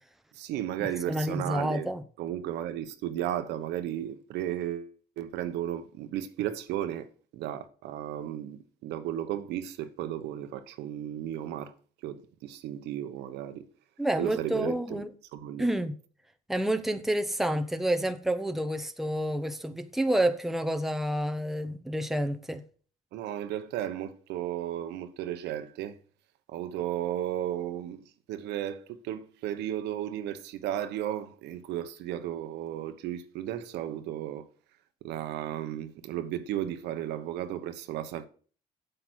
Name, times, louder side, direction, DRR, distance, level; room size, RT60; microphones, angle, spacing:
voice 1, 0.3-1.9 2.2-7.1 7.3-11.7 12.0-13.7 14.2-15.0 15.3-15.7 23.1-25.9 26.5-34.4 35.0-38.2, right 11 dB, 85° right, 1.1 m, -34 dB
voice 2, 1.1-2.0 14.0-15.1 15.6-15.9 16.5-22.6, right 1 dB, ahead, 1.0 m, -29 dB
7.9 x 7.9 x 6.3 m
cardioid pair, 110°, 17 cm